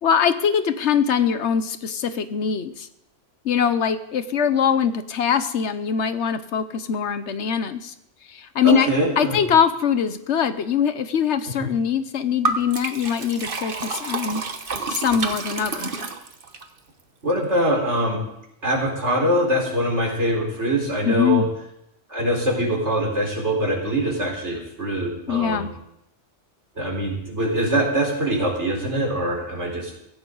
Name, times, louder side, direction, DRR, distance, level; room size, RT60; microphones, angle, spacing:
voice 1, 0.0-2.9 3.4-7.9 8.3-8.9 9.2-14.4 14.9-16.0 21.0-21.5 25.3-25.7, left 7 dB, 70° left, 11 dB, 1.1 m, -22 dB
voice 2, 8.6-9.4 11.5-11.7 17.2-18.2 18.6-21.4 22.1-25.7 26.8-29.9, right 1 dB, 65° right, -1 dB, 4.7 m, -23 dB
Liquid, 12.4-16.6, right 3 dB, 50° right, 1.3 m, -29 dB
16.5 x 16.0 x 3.9 m, 0.82 s
omnidirectional pair, 1.2 m